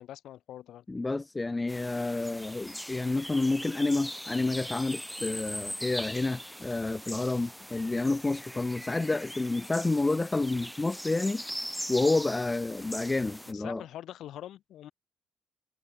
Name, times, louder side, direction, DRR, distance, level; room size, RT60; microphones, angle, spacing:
voice 1, 0.0-0.8 13.5-14.9, left 12 dB, 70° left, 4.9 m, -44 dB
voice 2, 0.9-11.4 11.9-13.8, left 2 dB, 20° left, 1.4 m, -29 dB
sound 1, 1.7-13.5, equal, ahead, 2.1 m, -41 dB
supercardioid pair, 60°, 0 cm